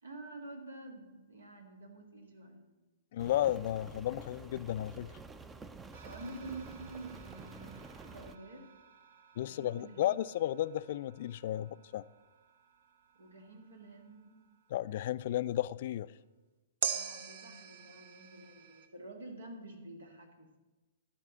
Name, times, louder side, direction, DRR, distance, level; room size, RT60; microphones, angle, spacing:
voice 1, 0.0-2.6 6.0-8.7 9.4-10.2 13.2-14.3 16.9-20.6, right 2 dB, 80° right, 4 dB, 2.0 m, -48 dB
voice 2, 3.1-5.2 9.4-12.0 14.7-16.1, left 13 dB, 55° left, 17 dB, 0.3 m, -33 dB
Rain, 3.2-8.4, right 4 dB, 15° right, 0.5 m, -50 dB
sound 1, 5.9-15.3 16.8-18.9, right 7 dB, 60° right, 0.8 m, -46 dB
12.5 x 4.4 x 7.3 m, 1.2 s
figure-of-eight pair, 115°, 0 cm